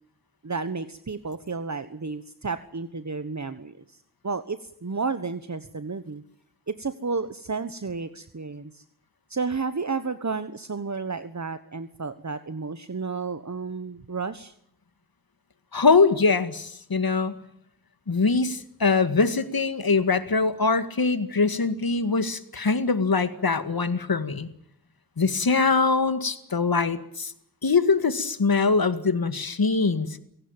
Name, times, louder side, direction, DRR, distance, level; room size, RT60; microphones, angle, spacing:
voice 1, 0.4-4.0 4.2-6.2 6.7-8.8 9.3-14.5, right 4 dB, 50° right, 11 dB, 1.3 m, -32 dB
voice 2, 15.7-17.4 18.1-24.5 25.2-27.3 27.6-30.1, left 4 dB, 70° left, 11 dB, 2.0 m, -23 dB
25.0 x 17.5 x 9.0 m, 0.71 s
wide cardioid pair, 45°, 37 cm